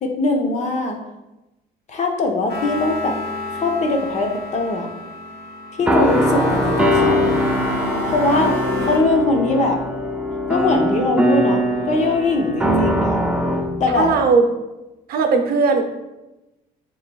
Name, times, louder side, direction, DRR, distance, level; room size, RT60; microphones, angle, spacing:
voice 1, 0.0-1.0 1.9-3.2 3.6-4.9 5.8-7.3 8.1-8.6 8.9-9.8 10.5-13.2 13.8-14.1, left 2 dB, 45° left, 3 dB, 0.8 m, -21 dB
sound 1, 2.5-9.0, left 2 dB, 75° left, 1.1 m, -29 dB
sound 2, 5.8-14.3, equal, 5° right, 0.5 m, -21 dB
voice 2, 13.9-14.4 15.1-15.8, right 4 dB, 65° right, 5 dB, 0.7 m, -17 dB
7.2 x 3.1 x 2.3 m, 1.0 s
cardioid pair, 110°, 17 cm